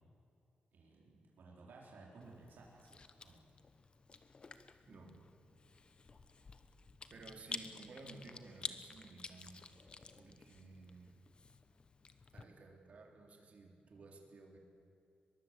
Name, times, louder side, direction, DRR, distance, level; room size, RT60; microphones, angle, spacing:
voice 1, 0.7-3.4, right 3 dB, 75° right, -3 dB, 4.6 m, -58 dB
Chewing mastication, 2.2-12.4, left 4 dB, 30° left, 0.9 m, -51 dB
voice 2, 4.9-5.2 7.1-9.6 10.2-11.1 12.3-14.6, right 3 dB, 45° right, 2 dB, 3.2 m, -55 dB
23.0 x 22.0 x 8.0 m, 2.5 s
wide cardioid pair, 180°, 3 cm